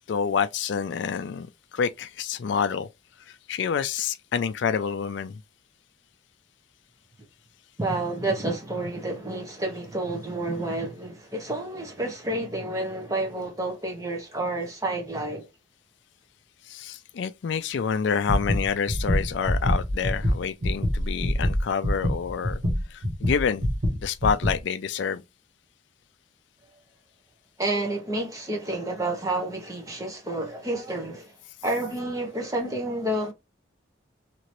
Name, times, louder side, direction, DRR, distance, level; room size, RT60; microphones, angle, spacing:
voice 1, 0.1-2.9 3.2-5.4 16.6-22.6 22.9-23.7 24.0-25.2, left 6 dB, 60° left, 0.3 m, -28 dB
voice 2, 7.8-15.4 27.6-31.3 31.6-33.3, right 2 dB, 15° right, 1.0 m, -29 dB
sound 1, 18.3-24.6, equal, 55° right, 1.3 m, -25 dB
3.0 x 2.9 x 2.6 m
head